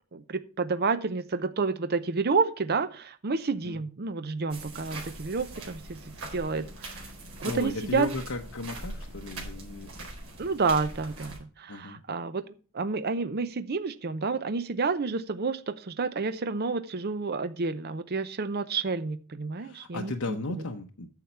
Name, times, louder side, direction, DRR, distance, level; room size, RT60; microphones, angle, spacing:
voice 1, 0.1-7.1 7.4-8.1 10.4-12.4 12.7-20.4, right 4 dB, 45° right, 12 dB, 0.6 m, -30 dB
sound 1, 4.5-11.4, right 2 dB, 70° right, 4.5 m, -42 dB
voice 2, 7.4-9.9 11.7-12.0 19.6-21.1, left 2 dB, 70° left, 3 dB, 0.9 m, -35 dB
9.5 x 7.1 x 4.5 m, 0.39 s
head